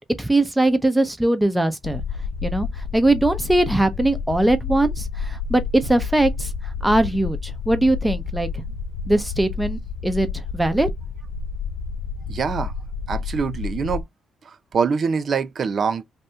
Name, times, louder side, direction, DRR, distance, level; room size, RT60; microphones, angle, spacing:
voice 1, 0.2-2.0 2.4-6.5 6.8-8.6 9.1-10.9, right 1 dB, 10° right, 0.8 m, -21 dB
sound 1, 1.8-14.0, left 5 dB, 70° left, 0.3 m, -30 dB
voice 2, 12.3-12.7 13.1-14.1 14.4-16.0, right 5 dB, 50° right, 0.6 m, -24 dB
2.8 x 2.6 x 3.4 m
cardioid pair, 90°, 0 cm